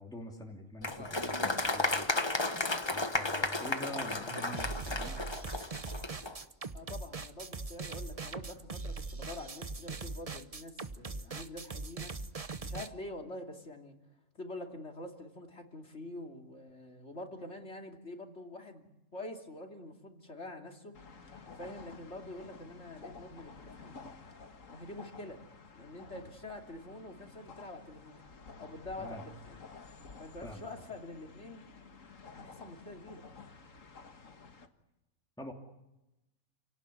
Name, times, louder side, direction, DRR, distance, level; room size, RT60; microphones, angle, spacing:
voice 1, 0.0-2.1 2.9-5.3 29.0-29.2 30.4-30.9 35.4-35.5, left 1 dB, 5° left, -1 dB, 3.0 m, -45 dB
Applause, 0.8-6.3, left 2 dB, 20° left, 1.3 m, -33 dB
sound 1, 4.5-12.9, right 3 dB, 30° right, 1.0 m, -41 dB
voice 2, 6.7-12.1 12.6-14.0 14.3-20.9 21.5-23.9 24.7-25.4 25.7-28.2 28.6-29.6 30.2-31.6 32.3-33.3, left 2 dB, 60° left, 3 dB, 3.1 m, -46 dB
sound 2, 20.9-34.7, left 4 dB, 75° left, 2.1 m, -52 dB
29.0 x 18.0 x 9.7 m, 0.95 s
omnidirectional pair, 1.4 m